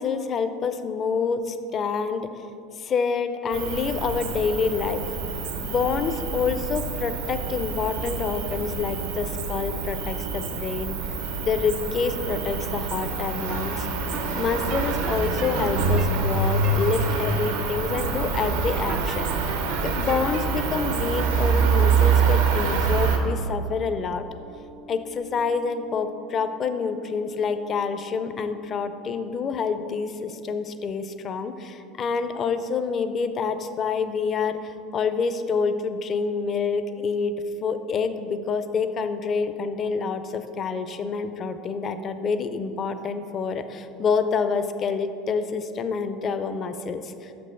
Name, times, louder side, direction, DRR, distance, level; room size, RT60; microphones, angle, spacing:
voice 1, 0.0-2.3 2.8-5.0 5.6-11.0 11.4-24.3 24.9-37.3 37.6-47.3, left 5 dB, 35° left, 10 dB, 0.4 m, -27 dB
Cricket, 3.5-23.2, right 4 dB, 90° right, 0.8 m, -26 dB
sound 1, 13.3-30.5, right 6 dB, 50° right, 0.4 m, -39 dB
6.2 x 5.2 x 5.5 m, 2.7 s
supercardioid pair, 130°, 0 cm